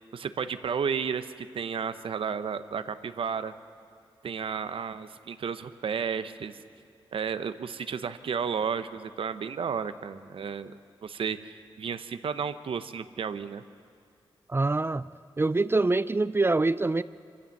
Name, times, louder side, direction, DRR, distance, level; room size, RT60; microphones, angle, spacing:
voice 1, 0.1-3.5 4.2-6.5 7.1-10.7 11.0-13.6, right 6 dB, 75° right, 12 dB, 0.8 m, -32 dB
voice 2, 14.5-15.1 15.4-17.0, right 3 dB, 25° right, 15 dB, 0.5 m, -25 dB
25.0 x 15.0 x 7.2 m, 2.3 s
cardioid pair, 50°, 9 cm